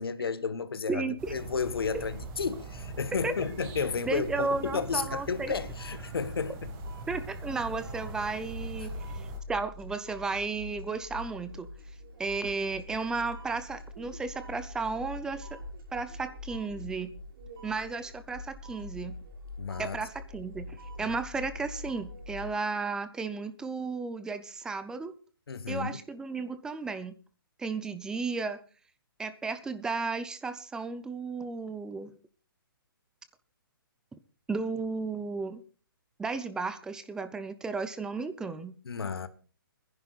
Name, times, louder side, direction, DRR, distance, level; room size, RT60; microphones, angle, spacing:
voice 1, 0.0-6.5 19.6-20.0 25.5-26.0 38.8-39.3, left 5 dB, 85° left, 1.3 m, -32 dB
voice 2, 0.9-1.3 1.9-2.0 3.2-3.3 4.0-5.5 7.1-11.7 12.2-15.5 15.9-17.1 17.6-19.2 19.8-25.1 25.7-27.2 27.6-28.6 29.2-32.1 34.5-35.6 36.2-38.8, right 4 dB, 5° right, 0.6 m, -34 dB
sound 1, 1.2-9.4, right 4 dB, 25° right, 1.8 m, -43 dB
sound 2, 5.5-22.5, left 1 dB, 70° right, 5.7 m, -44 dB
30.0 x 10.5 x 2.4 m
hypercardioid pair, 155°, 12 cm